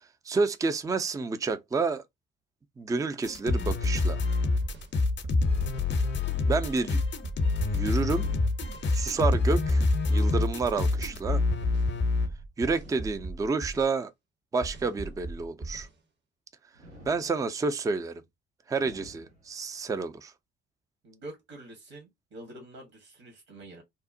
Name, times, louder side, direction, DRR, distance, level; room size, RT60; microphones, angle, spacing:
voice 1, 0.3-2.0 2.8-4.2 6.5-7.0 7.7-8.3 8.9-9.8 10.1-11.4 12.6-14.1 14.5-15.9 17.1-18.2 18.7-20.3, right 4 dB, 10° right, 0.4 m, -29 dB
sound 1, 3.2-12.3, left 3 dB, 35° left, 0.6 m, -26 dB
sound 2, 4.6-5.9 6.6-7.9 8.2-9.9 10.6-11.9 12.2-13.9 14.6-15.9, right 3 dB, 35° right, 0.7 m, -39 dB
sound 3, 10.7-11.8 12.7-13.8 14.7-15.8 16.7-17.8 18.7-19.8, right 1 dB, 90° right, 1.0 m, -52 dB
voice 2, 21.0-23.8, right 1 dB, 55° right, 1.1 m, -46 dB
2.8 x 2.0 x 2.5 m
hypercardioid pair, 45°, 33 cm